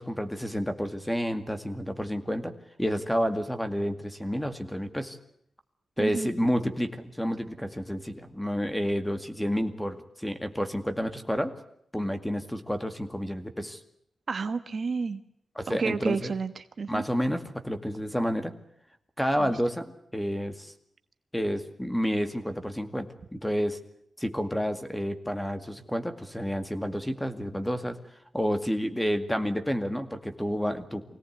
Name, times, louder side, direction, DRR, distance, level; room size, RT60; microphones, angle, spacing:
voice 1, 0.0-2.5 2.8-5.2 6.0-11.5 11.9-13.8 15.6-16.3 16.9-18.5 19.2-19.9 20.1-20.7 21.3-23.8 24.2-28.0 28.3-31.0, equal, 5° left, 9 dB, 2.1 m, -30 dB
voice 2, 6.0-6.3 14.3-15.2 15.7-17.0 19.4-19.5, right 5 dB, 50° right, 10 dB, 1.2 m, -31 dB
25.0 x 18.0 x 9.4 m, 0.73 s
wide cardioid pair, 115°, 0 cm